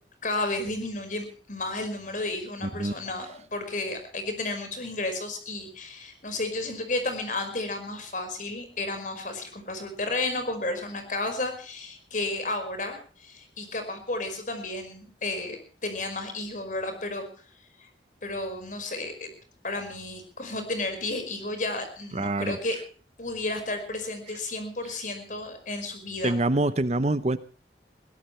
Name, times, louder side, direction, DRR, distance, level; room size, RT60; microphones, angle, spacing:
voice 1, 0.2-17.3 18.2-19.3 19.6-22.8 23.2-26.4, left 2 dB, 45° left, 7 dB, 5.2 m, -32 dB
voice 2, 2.6-2.9 22.1-22.6 26.2-27.4, right 2 dB, 40° right, 13 dB, 0.8 m, -25 dB
22.0 x 17.0 x 3.3 m, 0.40 s
head